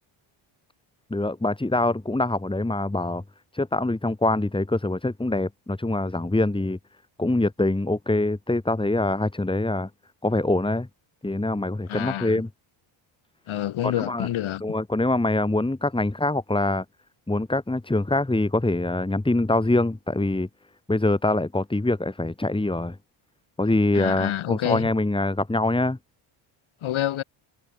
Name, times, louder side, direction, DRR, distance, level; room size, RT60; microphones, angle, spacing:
voice 1, 1.1-3.2 3.5-6.8 7.2-9.9 10.2-10.9 11.2-12.5 13.8-14.3 14.6-16.8 17.3-20.5 20.9-23.0 23.6-26.0, left 2 dB, 10° left, 4.4 m, -24 dB
voice 2, 11.9-12.4 13.5-14.6 23.9-24.9 26.8-27.2, left 12 dB, 70° left, 3.8 m, -27 dB
cardioid pair, 110°, 49 cm